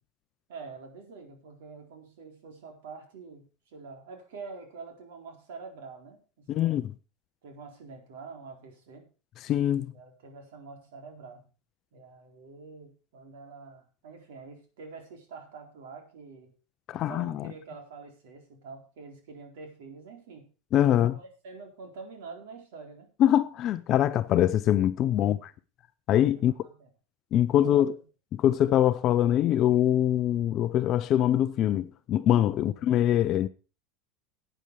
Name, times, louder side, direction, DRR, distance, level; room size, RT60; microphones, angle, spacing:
voice 1, 0.5-6.9 7.4-9.1 9.9-11.4 11.9-16.5 16.9-20.5 20.9-23.1 25.0-25.4 26.3-26.9 27.6-28.0 32.5-32.8, right 4 dB, 85° right, 4.1 m, -46 dB
voice 2, 6.5-6.9 9.4-9.9 16.9-17.4 20.7-21.2 23.2-25.5 26.1-26.5 27.3-28.0 28.3-33.5, left 11 dB, 30° left, 0.5 m, -23 dB
12.0 x 8.9 x 4.8 m
supercardioid pair, 175°, 0 cm